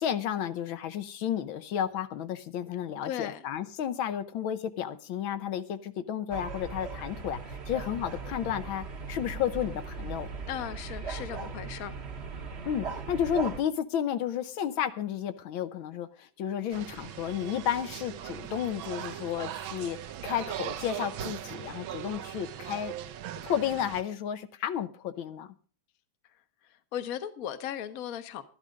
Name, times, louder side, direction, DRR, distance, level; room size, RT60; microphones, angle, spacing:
voice 1, 0.0-10.3 12.6-20.0 20.2-22.9 23.4-25.5, left 9 dB, 80° left, 1.6 m, -32 dB
voice 2, 3.0-3.4 10.5-11.9 26.7-28.4, left 10 dB, 50° left, 1.2 m, -37 dB
sound 1, 6.3-13.6, right 4 dB, 40° right, 1.0 m, -38 dB
sound 2, 16.7-24.0, right 11 dB, 80° right, 1.5 m, -39 dB
12.0 x 11.5 x 5.1 m
omnidirectional pair, 2.2 m